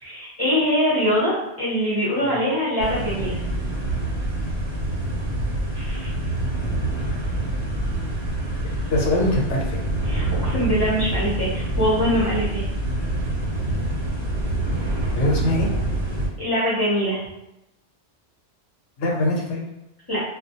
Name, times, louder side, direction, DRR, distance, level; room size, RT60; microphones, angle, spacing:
voice 1, 0.0-3.4 5.7-6.1 10.1-12.7 16.4-17.2 20.1-20.2, equal, 25° left, -10 dB, 0.5 m, -23 dB
sound 1, 2.8-16.3, right 1 dB, 70° right, 0.9 m, -26 dB
voice 2, 8.9-9.8 15.1-15.7 19.0-19.6, left 1 dB, 80° left, -1 dB, 0.9 m, -22 dB
2.2 x 2.1 x 2.7 m, 0.90 s
omnidirectional pair, 1.2 m